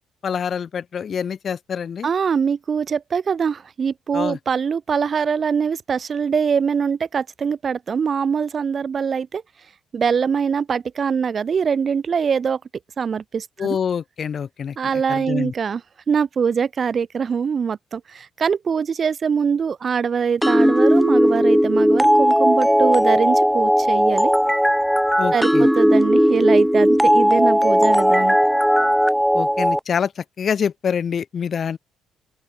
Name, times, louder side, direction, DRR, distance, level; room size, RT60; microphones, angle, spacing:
voice 1, 0.2-2.1 4.1-4.4 13.6-15.5 25.2-25.7 29.3-31.8, left 7 dB, 50° left, 1.4 m, -26 dB
voice 2, 2.0-9.4 9.9-12.6 13.0-13.7 14.8-15.8 16.1-24.3 25.3-28.4, right 6 dB, 45° right, 0.5 m, -23 dB
sound 1, 20.4-29.8, equal, ahead, 0.8 m, -17 dB
open air
hypercardioid pair, 45°, 0 cm